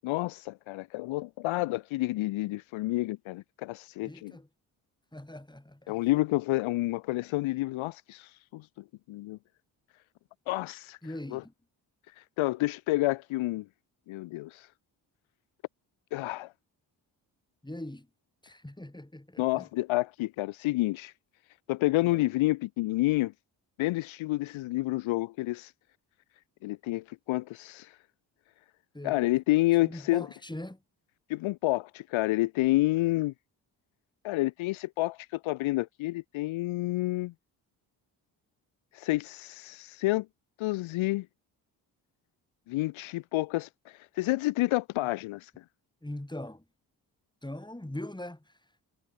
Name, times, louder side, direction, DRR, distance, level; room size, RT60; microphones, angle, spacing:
voice 1, 0.0-4.4 5.9-8.7 9.1-9.4 10.5-11.0 11.3-11.4 12.2-13.7 14.1-14.7 16.1-16.5 19.4-21.1 21.7-23.3 23.8-25.7 26.6-28.0 29.0-30.3 31.3-33.3 34.2-37.3 38.9-40.3 40.6-41.3 42.7-45.6, left 19 dB, 70° left, 0.7 m, -29 dB
voice 2, 4.0-4.5 5.1-6.0 11.0-11.5 17.6-18.1 18.4-19.7 22.0-22.3 28.9-29.3 29.9-30.8 46.0-46.6 47.4-48.4, left 1 dB, 10° left, 4.9 m, -41 dB
hypercardioid pair, 40°, 50 cm